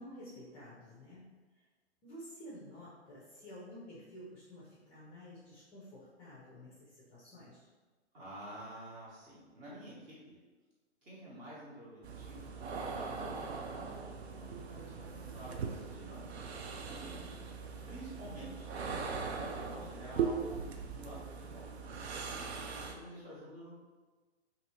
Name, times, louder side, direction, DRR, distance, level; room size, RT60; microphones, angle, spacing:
voice 1, 0.0-1.6 2.0-7.7 17.0-17.4, equal, 20° left, -7 dB, 0.5 m, -51 dB
voice 2, 8.1-10.4 11.0-18.7 19.4-21.7 22.7-23.7, right 1 dB, 20° right, -8 dB, 1.1 m, -50 dB
sound 1, 12.0-22.9, right 5 dB, 70° right, 0.5 m, -40 dB
2.7 x 2.6 x 3.0 m, 1.3 s
figure-of-eight pair, 120°, 34 cm